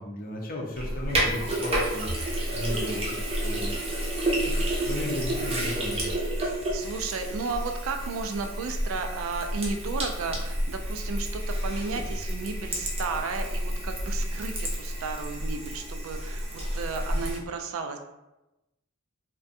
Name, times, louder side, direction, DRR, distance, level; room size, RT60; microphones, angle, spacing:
voice 1, 0.0-3.9 4.3-6.1, left 1 dB, 45° left, -1 dB, 0.5 m, -35 dB
Sink (filling or washing), 0.8-17.4, right 1 dB, 30° right, 0.5 m, -30 dB
voice 2, 6.4-18.0, right 4 dB, 85° right, 5 dB, 0.3 m, -34 dB
2.5 x 2.2 x 2.6 m, 0.96 s
head